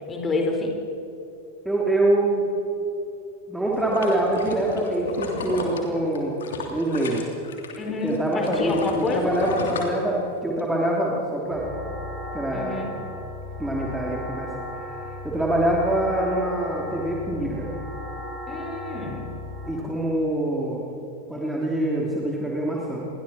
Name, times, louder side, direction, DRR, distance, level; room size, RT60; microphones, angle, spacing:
voice 1, 0.1-0.7 7.8-9.3 12.5-12.9 18.5-19.2, left 3 dB, 20° left, 1 dB, 4.6 m, -28 dB
voice 2, 1.6-2.4 3.5-6.3 6.7-7.2 7.9-11.6 12.3-12.9 13.6-14.5 15.2-17.7 19.7-20.8 21.3-23.1, right 1 dB, 5° right, -4 dB, 3.3 m, -25 dB
sound 1, 3.6-7.8 8.1-10.6 11.0-11.1, left 3 dB, 65° left, 3.1 m, -32 dB
sound 2, 11.5-19.7, left 1 dB, 35° right, 6.6 m, -36 dB
30.0 x 22.5 x 4.4 m, 2.9 s
figure-of-eight pair, 90°, 0 cm